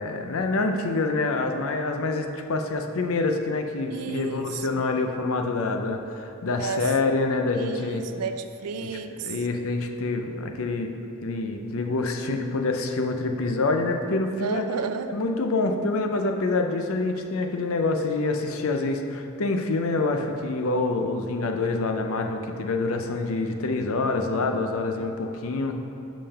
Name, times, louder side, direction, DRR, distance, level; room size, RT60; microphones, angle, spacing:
voice 1, 0.0-8.0 8.8-8.9 9.2-10.9 11.2-14.6 15.1-25.8, left 3 dB, 65° left, 4 dB, 0.6 m, -26 dB
voice 2, 3.9-4.8 6.6-6.9 7.6-9.3 14.4-15.2, right 5 dB, 85° right, 9 dB, 0.4 m, -32 dB
5.5 x 5.2 x 5.6 m, 2.8 s
head